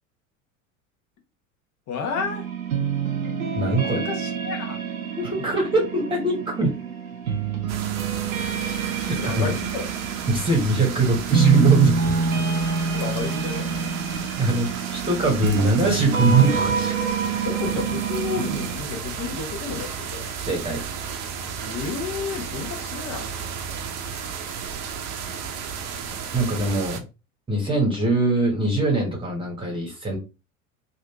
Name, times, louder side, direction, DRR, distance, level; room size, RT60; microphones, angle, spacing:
voice 1, 1.9-2.5 3.8-4.8 9.2-9.9 12.9-13.7 15.6-15.7 17.4-20.3 21.6-23.3, left 6 dB, 45° left, 3 dB, 1.1 m, -31 dB
sound 1, 2.2-18.8, right 5 dB, 90° right, 0.7 m, -27 dB
voice 2, 3.5-4.0 5.2-6.8 8.6-8.8 9.1-9.4 10.3-12.0 14.4-16.9 20.5-20.8 26.3-27.0 27.5-30.2, right 3 dB, 10° right, 1 dB, 1.2 m, -21 dB
sound 2, 7.7-27.0, right 6 dB, 40° right, 0.7 m, -33 dB
3.1 x 2.6 x 3.0 m, 0.29 s
hypercardioid pair, 80°, 40 cm